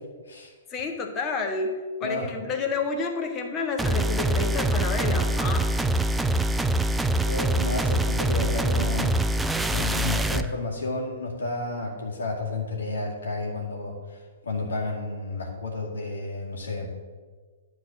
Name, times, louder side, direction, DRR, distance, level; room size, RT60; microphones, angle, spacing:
voice 1, 0.7-5.7, left 4 dB, 25° left, 3 dB, 1.3 m, -30 dB
sound 1, 3.8-10.5, right 1 dB, 5° right, 0.4 m, -24 dB
voice 2, 7.2-9.2 9.7-16.9, left 3 dB, 70° left, -2 dB, 2.1 m, -31 dB
10.5 x 3.9 x 7.2 m, 1.5 s
figure-of-eight pair, 115°, 0 cm